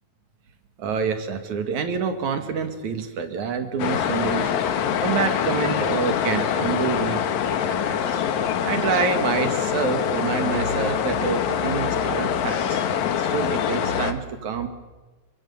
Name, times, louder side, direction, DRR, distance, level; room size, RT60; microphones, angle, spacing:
voice 1, 0.8-8.2 8.6-12.8 13.2-14.7, right 6 dB, 70° right, 7 dB, 3.4 m, -27 dB
sound 1, 3.8-14.1, left 8 dB, 70° left, 2.7 m, -24 dB
28.5 x 24.5 x 7.2 m, 1.2 s
omnidirectional pair, 3.5 m